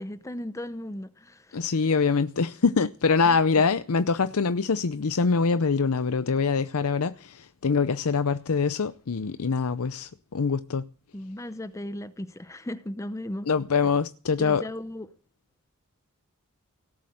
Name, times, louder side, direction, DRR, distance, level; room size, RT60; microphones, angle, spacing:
voice 1, 0.0-1.8 3.2-3.4 11.1-13.5 14.4-15.1, left 1 dB, 15° left, 0.6 m, -36 dB
voice 2, 1.5-10.9 13.5-14.6, left 5 dB, 80° left, 0.6 m, -24 dB
17.5 x 7.7 x 8.7 m
head